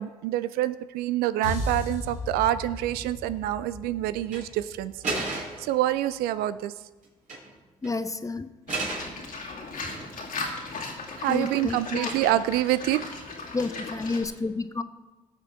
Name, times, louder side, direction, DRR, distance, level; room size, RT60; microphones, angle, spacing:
voice 1, 0.0-6.7 11.2-13.1, right 14 dB, 65° right, 15 dB, 0.4 m, -27 dB
sound 1, 1.4-5.8, left 2 dB, 85° left, 3.9 m, -36 dB
sound 2, 4.2-4.4 5.0-5.7 7.0-7.5 7.8-8.0 8.7-9.2 9.7-10.4 12.0-12.4, right 3 dB, 50° right, 3.5 m, -33 dB
voice 2, 7.8-8.5 11.3-12.1 13.5-14.8, left 3 dB, 20° left, 12 dB, 0.7 m, -30 dB
Livestock farm animals working animals, 8.7-14.2, left 3 dB, 55° left, 2.3 m, -37 dB
17.5 x 6.7 x 3.5 m, 1.2 s
hypercardioid pair, 50°, 17 cm